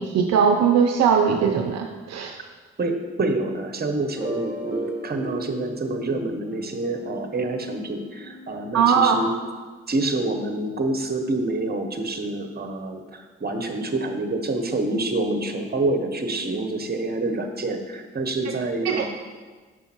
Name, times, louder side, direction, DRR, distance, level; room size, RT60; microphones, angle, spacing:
voice 1, 0.0-2.4 8.7-9.2 18.8-19.1, right 7 dB, 60° right, 4 dB, 0.6 m, -20 dB
voice 2, 2.8-9.3 9.9-19.1, right 2 dB, 30° right, 5 dB, 1.0 m, -27 dB
sound 1, 4.2-8.7, right 2 dB, 5° right, 2.2 m, -35 dB
6.3 x 5.5 x 4.4 m, 1.4 s
hypercardioid pair, 40°, 30 cm